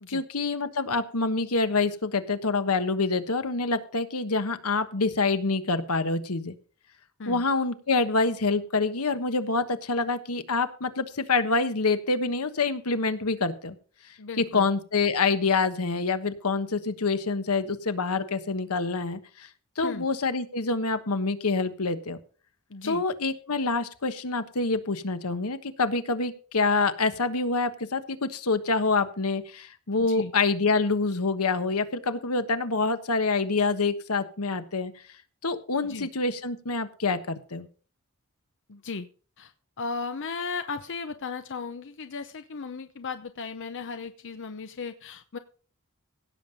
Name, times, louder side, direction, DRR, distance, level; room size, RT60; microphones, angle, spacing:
voice 1, 0.1-6.5 7.3-13.7 14.4-19.5 19.8-22.2 22.8-34.9 35.4-37.7, left 3 dB, 80° left, 10 dB, 1.3 m, -26 dB
voice 2, 14.2-14.7 19.8-20.1 22.7-23.0 30.0-30.3 35.8-36.1 38.7-39.1 39.4-45.4, left 4 dB, 55° left, 9 dB, 0.8 m, -36 dB
16.5 x 7.3 x 5.1 m, 0.40 s
head